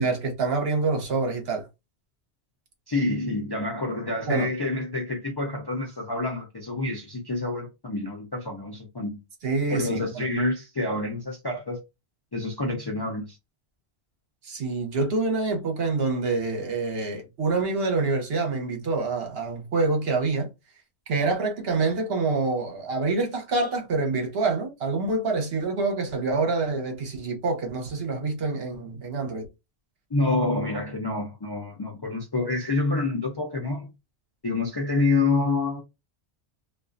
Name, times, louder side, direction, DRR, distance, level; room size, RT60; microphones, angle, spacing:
voice 1, 0.0-1.7 4.3-4.5 9.4-10.3 14.4-20.5 21.1-29.5, right 3 dB, 70° right, 1.0 m, -26 dB
voice 2, 2.9-9.2 9.7-11.8 12.3-13.4 30.1-33.9 34.4-35.8, left 2 dB, 40° left, 0.3 m, -27 dB
2.4 x 2.3 x 2.4 m
omnidirectional pair, 1.1 m